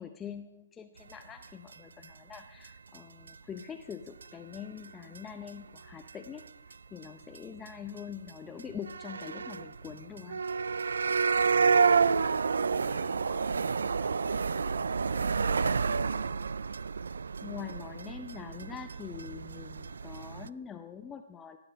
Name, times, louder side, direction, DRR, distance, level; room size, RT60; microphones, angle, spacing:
voice 1, 0.0-6.5 6.9-10.4 17.4-21.6, left 7 dB, 15° left, 6 dB, 0.6 m, -44 dB
sound 1, 1.4-1.5 1.7-1.8 2.0-2.1 2.3-2.4 2.6-2.7 2.9-3.0 3.3-3.6 3.9-4.0 4.2-4.3 4.5-4.8 5.1-5.2 5.5-6.1 6.4-6.7 7.0-7.1 7.3-7.4 7.7-7.8 8.0-8.1 8.3-8.4 8.6-20.5, right 5 dB, 75° right, 0.3 m, -29 dB
voice 2, 8.4-8.8, right 3 dB, 20° right, 4 dB, 2.2 m, -52 dB
17.0 x 7.8 x 5.2 m, 0.94 s
hypercardioid pair, 135°, 0 cm